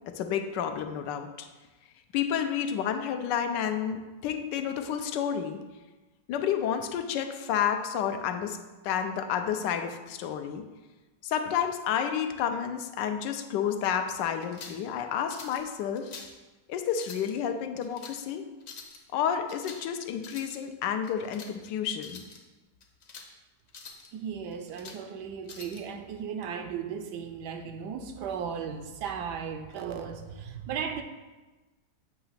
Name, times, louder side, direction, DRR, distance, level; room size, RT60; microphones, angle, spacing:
voice 1, 0.1-1.5 2.1-5.6 6.3-8.6 8.8-10.6 11.2-16.1 16.7-18.5 19.1-22.2, left 8 dB, 90° left, 7 dB, 1.2 m, -30 dB
sound 1, 14.4-14.8 15.3-15.6 15.9-16.4 16.9-17.3 17.8-18.2 18.6-19.0 19.5-19.9 20.1-20.6 21.0-21.5 21.9-22.4 22.8-23.3 23.7-24.1 24.5-25.0 25.5-25.8, left 5 dB, 50° left, 0.8 m, -46 dB
voice 2, 24.1-31.0, right 7 dB, 75° right, 7 dB, 1.2 m, -36 dB
8.0 x 2.8 x 5.7 m, 1.2 s
omnidirectional pair, 1.8 m